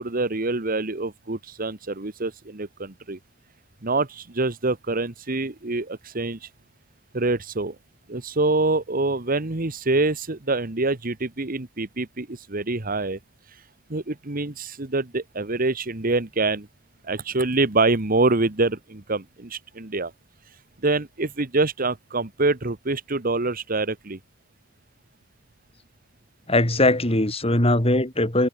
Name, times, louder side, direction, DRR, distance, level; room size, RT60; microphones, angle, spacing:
voice 1, 0.0-3.2 3.8-6.4 7.1-7.7 8.1-13.2 13.9-16.7 17.0-20.1 20.8-24.2, right 3 dB, 45° right, 1.5 m, -25 dB
voice 2, 26.5-28.5, left 1 dB, 30° left, 3.8 m, -20 dB
head